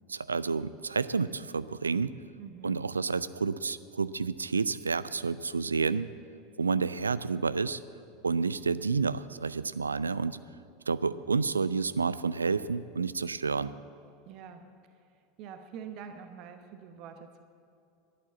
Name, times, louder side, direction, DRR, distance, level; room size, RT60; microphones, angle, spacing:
voice 1, 0.1-2.2 2.6-6.1 6.6-7.8 8.2-10.4 10.9-13.7, right 4 dB, 80° right, 16 dB, 0.4 m, -30 dB
voice 2, 2.4-2.8 14.3-14.6 15.4-17.4, right 7 dB, 45° right, 7 dB, 0.9 m, -45 dB
11.5 x 11.0 x 7.2 m, 2.5 s
figure-of-eight pair, 80°, 0 cm